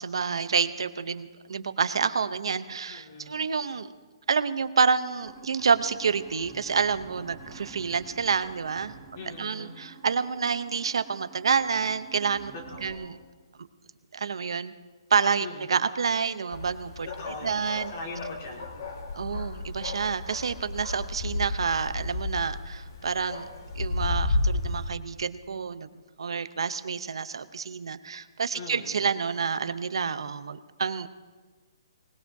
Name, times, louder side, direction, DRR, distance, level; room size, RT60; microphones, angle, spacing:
voice 1, 0.0-3.9 4.3-8.9 9.2-12.5 12.8-13.2 14.1-14.7 15.1-17.1 17.4-17.9 19.1-23.5 23.8-25.9 26.2-31.1, right 5 dB, 70° right, 12 dB, 0.7 m, -28 dB
voice 2, 2.9-3.4 9.1-9.7 12.5-13.2 15.4-15.7 17.1-19.0 28.5-28.9, left 2 dB, 25° left, 1 dB, 2.2 m, -41 dB
sound 1, 5.2-12.9, right 5 dB, 5° left, 3.0 m, -49 dB
sound 2, 16.5-24.9, left 2 dB, 40° left, 1.7 m, -32 dB
22.5 x 19.5 x 2.7 m, 1.4 s
hypercardioid pair, 180°, 3 cm